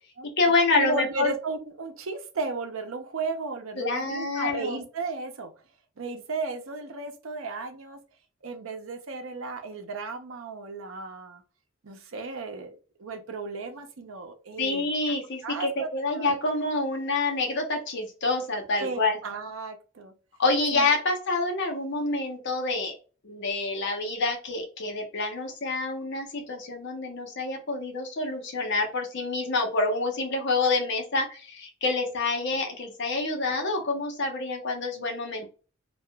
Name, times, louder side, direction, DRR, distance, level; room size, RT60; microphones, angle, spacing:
voice 1, 0.2-1.3 3.8-4.8 14.6-19.2 20.4-22.9 23.2-35.5, left 3 dB, 60° left, 2 dB, 0.8 m, -27 dB
voice 2, 0.8-5.5 6.0-8.0 8.4-11.4 11.8-14.9 15.4-16.3 18.8-20.1 20.7-20.9, right 3 dB, 80° right, 6 dB, 0.6 m, -34 dB
2.8 x 2.3 x 2.2 m, 0.36 s
head